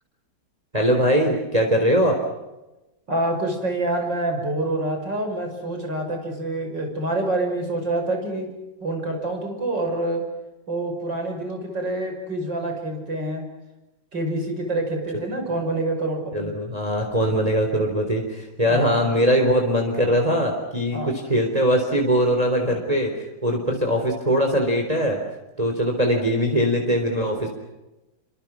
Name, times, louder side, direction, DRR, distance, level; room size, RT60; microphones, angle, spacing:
voice 1, 0.7-2.2 16.3-23.1 23.4-25.2 25.6-27.5, equal, 20° right, 2 dB, 3.9 m, -21 dB
voice 2, 3.1-8.5 8.8-10.2 10.7-13.5 14.1-16.5 18.7-19.0 20.9-21.1, right 1 dB, 65° right, 4 dB, 6.6 m, -26 dB
28.5 x 26.0 x 6.3 m, 1.0 s
omnidirectional pair, 2.1 m